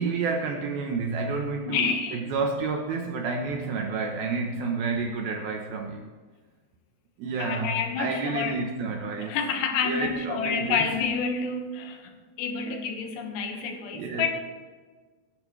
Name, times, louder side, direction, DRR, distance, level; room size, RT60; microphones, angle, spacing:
voice 1, 0.0-6.1 7.2-9.4 9.8-10.9 12.7-12.8 13.5-14.3, right 4 dB, 75° right, 3 dB, 2.3 m, -30 dB
voice 2, 1.7-2.3 7.4-8.6 9.2-12.1 12.4-14.3, left 6 dB, 75° left, 4 dB, 3.4 m, -29 dB
18.5 x 11.0 x 3.2 m, 1.4 s
omnidirectional pair, 5.2 m